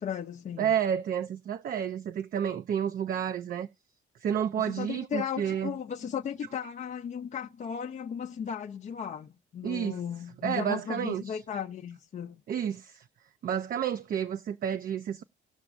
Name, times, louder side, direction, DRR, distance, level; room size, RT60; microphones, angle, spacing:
voice 1, 0.0-0.7 4.6-12.4, left 8 dB, 40° left, 0.4 m, -36 dB
voice 2, 0.6-3.7 4.2-5.7 9.6-10.0 10.4-11.4 12.5-13.0 13.4-15.2, right 9 dB, 45° right, 0.4 m, -30 dB
18.0 x 6.0 x 2.4 m
cardioid pair, 90°, 20 cm